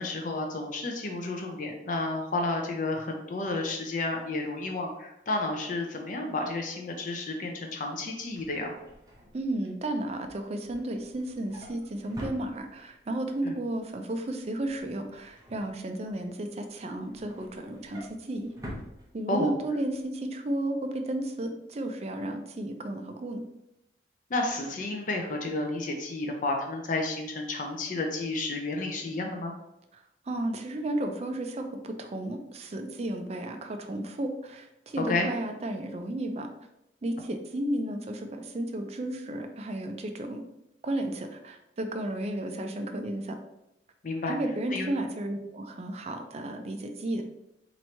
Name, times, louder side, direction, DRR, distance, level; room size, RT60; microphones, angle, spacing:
voice 1, 0.0-8.7 13.4-13.6 19.3-19.5 24.3-29.5 35.0-35.3 44.0-44.4 44.7-44.9, left 2 dB, 45° left, 2 dB, 0.5 m, -31 dB
Drawer open or close, 8.2-13.1 13.5-13.8 14.1-16.3 16.7-19.7 20.0-20.2 20.5-20.6, equal, 20° right, 0.8 m, -47 dB
voice 2, 9.3-18.5 19.1-23.4 30.3-36.5 37.0-40.4 40.8-43.4 44.3-47.2, right 1 dB, 35° right, 5 dB, 0.4 m, -33 dB
2.9 x 2.6 x 4.4 m, 0.85 s
head